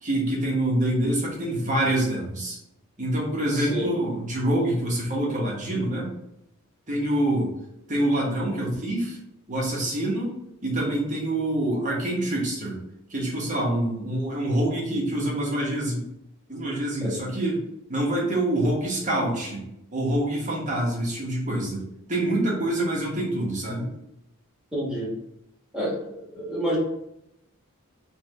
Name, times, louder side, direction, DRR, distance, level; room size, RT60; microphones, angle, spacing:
voice 1, 0.0-2.6 3.0-6.1 6.9-7.5 7.9-9.2 9.5-10.3 10.6-12.8 13.1-16.1 16.5-17.6 17.9-19.6 19.9-21.8 22.1-23.9, right 1 dB, 35° right, -3 dB, 1.2 m, -26 dB
voice 2, 3.5-3.9 17.0-17.2 24.7-25.1 25.7-26.8, equal, 5° right, -8 dB, 1.5 m, -29 dB
3.4 x 3.3 x 3.4 m, 0.82 s
head